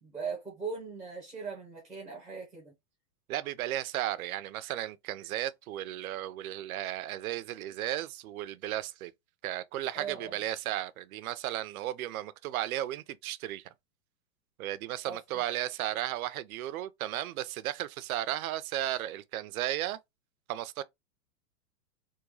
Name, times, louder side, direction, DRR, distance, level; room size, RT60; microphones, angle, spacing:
voice 1, 0.0-2.7 9.9-10.4 15.1-15.4, right 5 dB, ahead, 0.5 m, -39 dB
voice 2, 3.3-9.1 9.4-13.6 14.6-20.0 20.5-20.8, right 13 dB, 65° right, 0.6 m, -34 dB
3.6 x 2.2 x 3.1 m
supercardioid pair, 165°, 46 cm